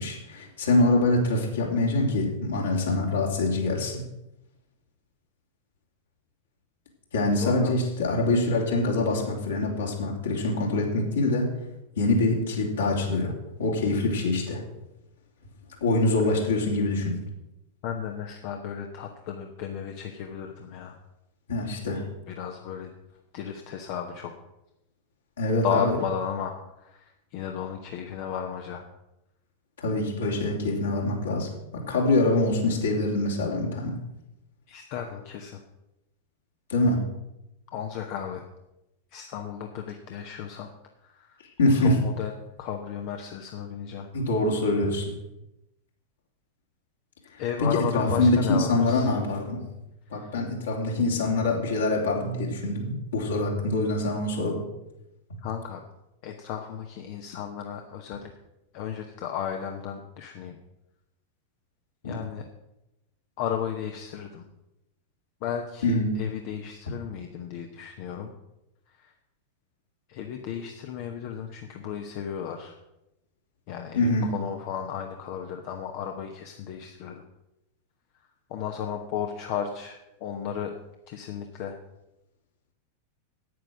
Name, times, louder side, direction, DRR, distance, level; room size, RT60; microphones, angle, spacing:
voice 1, 0.0-4.0 7.1-11.5 12.0-13.3 13.6-14.6 15.8-17.1 21.5-22.1 25.4-25.9 29.8-34.0 36.7-37.0 41.6-42.0 44.1-45.1 47.6-47.7 47.9-49.6 50.1-54.6 62.0-62.1 65.8-66.1 73.9-74.3, left 2 dB, 65° left, -1 dB, 3.1 m, -24 dB
voice 2, 7.4-7.7 17.8-21.0 22.3-22.9 23.3-24.3 25.6-26.5 26.8-28.8 34.7-35.6 37.7-38.4 39.1-40.7 41.0-41.4 41.7-42.3 42.6-44.1 47.4-49.1 50.1-50.3 55.4-55.8 56.2-58.3 58.7-60.5 62.0-62.4 63.4-64.4 65.4-68.3 69.0-69.1 70.1-72.7 73.7-77.2 78.5-80.7 81.1-81.8, left 8 dB, 45° left, 4 dB, 1.0 m, -34 dB
9.4 x 9.1 x 6.3 m, 0.92 s
figure-of-eight pair, 90°, 0 cm